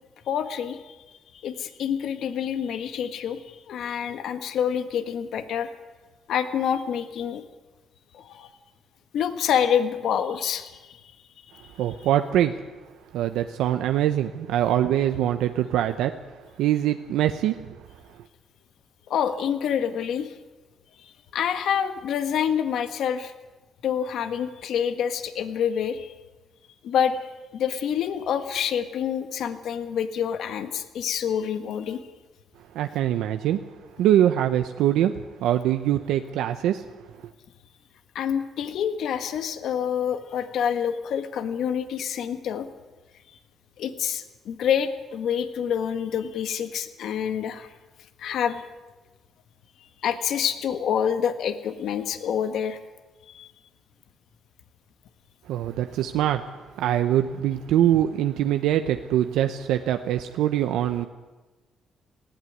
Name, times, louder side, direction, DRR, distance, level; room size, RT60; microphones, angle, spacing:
voice 1, 0.3-1.0 1.3-5.7 6.3-7.4 8.1-8.5 9.1-11.0 19.1-20.3 21.0-23.3 23.8-26.1 26.8-32.0 38.1-42.7 43.3-43.4 43.8-47.7 48.2-48.6 49.8-52.8 53.3-53.5, left 8 dB, 75° left, 9 dB, 1.6 m, -27 dB
voice 2, 11.8-12.5 13.1-16.1 16.6-17.6 32.7-33.6 34.0-36.8 55.5-56.4 56.8-61.1, right 11 dB, 90° right, 7 dB, 0.9 m, -23 dB
19.0 x 15.5 x 9.5 m, 1.2 s
cardioid pair, 90°, 0 cm